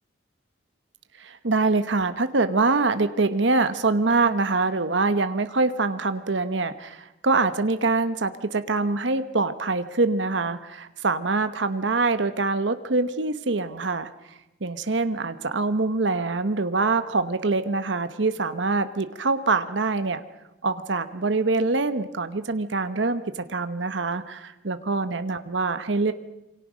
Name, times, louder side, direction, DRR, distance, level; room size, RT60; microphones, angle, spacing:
voice 1, 1.2-20.2 20.6-26.1, right 3 dB, 80° right, 10 dB, 1.1 m, -24 dB
27.0 x 24.5 x 6.3 m, 0.93 s
head